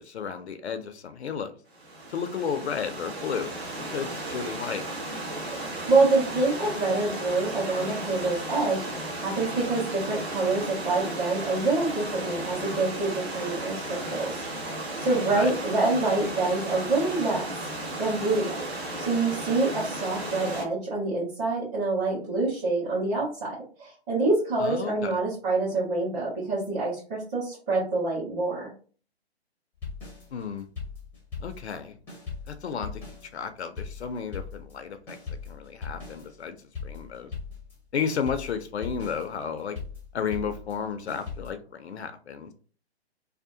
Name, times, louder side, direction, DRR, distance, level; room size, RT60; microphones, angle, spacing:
voice 1, 0.0-1.6 2.1-3.5 3.9-4.8 15.3-15.5 24.6-25.1 30.3-30.7 31.4-32.0 32.5-33.0 33.3-35.2 35.5-37.3 37.9-39.8 40.1-42.5, left 6 dB, 75° left, 9 dB, 0.5 m, -33 dB
Stream / Liquid, 1.7-20.6, right 1 dB, 70° right, 1.2 m, -35 dB
voice 2, 5.5-17.5 18.0-18.6 19.0-28.7, right 3 dB, 25° right, -9 dB, 1.2 m, -26 dB
sound 1, 29.8-31.8 32.1-37.8 38.1-41.5, left 5 dB, 5° left, 0.6 m, -39 dB
2.7 x 2.0 x 2.6 m, 0.40 s
figure-of-eight pair, 135°, 33 cm